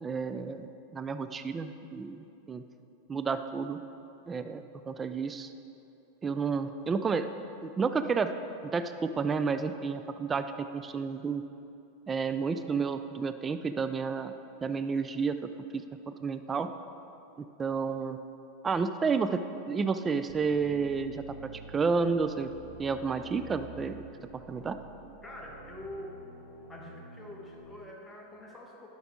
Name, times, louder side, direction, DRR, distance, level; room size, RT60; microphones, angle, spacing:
voice 1, 0.0-2.6 3.1-3.8 4.3-5.5 6.2-7.3 7.6-8.3 8.6-11.4 12.1-14.3 14.6-15.4 15.7-16.7 17.4-18.2 18.6-22.5 22.8-24.0 24.3-24.8, right 5 dB, 20° right, 10 dB, 0.3 m, -31 dB
sound 1, 20.3-27.6, right 3 dB, 65° right, 1.7 m, -50 dB
voice 2, 25.2-26.2 26.7-28.9, left 1 dB, 10° left, -2 dB, 1.5 m, -45 dB
11.0 x 6.2 x 3.7 m, 2.8 s
hypercardioid pair, 90°, 0 cm